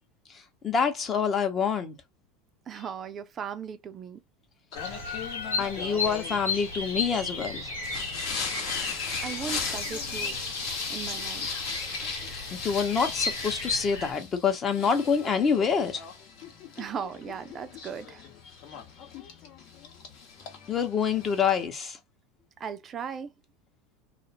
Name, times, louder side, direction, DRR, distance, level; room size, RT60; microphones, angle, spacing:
voice 1, 0.6-1.9 5.6-7.7 12.6-16.0 20.7-22.0, left 6 dB, 30° left, 0.8 m, -26 dB
voice 2, 2.7-4.2 9.2-10.4 10.9-11.5 16.8-18.2 22.6-23.3, right 7 dB, 35° right, 0.4 m, -37 dB
Bird vocalization bird call bird song, 4.7-14.1, left 4 dB, 85° left, 1.1 m, -34 dB
Singing, 4.7-21.7, left 5 dB, 60° left, 0.9 m, -38 dB
2.4 x 2.0 x 2.9 m
hypercardioid pair, 100°, 0 cm